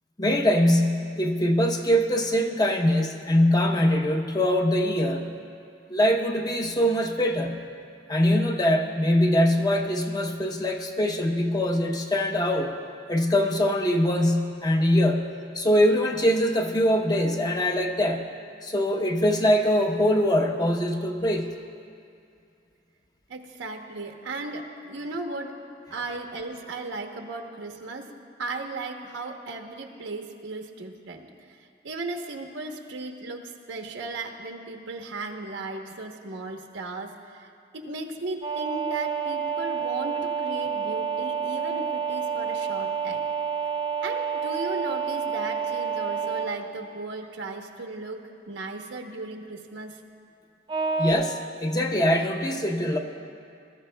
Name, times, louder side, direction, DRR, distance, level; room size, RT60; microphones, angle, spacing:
voice 1, 0.2-5.3 5.9-7.6 8.1-12.7 13.1-18.2 18.6-21.5 51.0-53.0, equal, 20° left, 4 dB, 0.7 m, -23 dB
voice 2, 23.3-25.5 25.9-28.1 28.4-31.6 31.8-37.5 37.7-43.3 44.0-48.2 48.5-50.0, right 2 dB, 85° right, 3 dB, 0.9 m, -36 dB
sound 1, 38.4-46.5 50.7-51.1, right 6 dB, 25° right, 0.6 m, -29 dB
22.0 x 13.0 x 2.2 m, 2.4 s
head